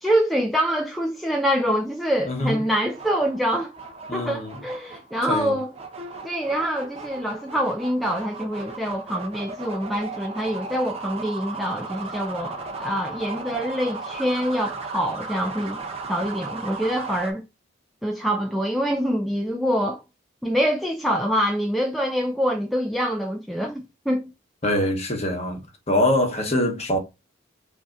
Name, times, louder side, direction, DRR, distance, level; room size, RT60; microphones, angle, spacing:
voice 1, 0.0-3.7 4.1-5.7 6.2-15.8 16.1-17.4 18.0-20.0 20.4-24.3, equal, ahead, 0.4 m, -25 dB
voice 2, 2.2-2.6 4.1-4.6 5.3-5.6 24.6-25.6 25.9-27.0, left 1 dB, 30° left, 1.1 m, -23 dB
sound 1, 2.3-17.3, right 3 dB, 30° right, 0.8 m, -36 dB
5.3 x 2.7 x 2.4 m
head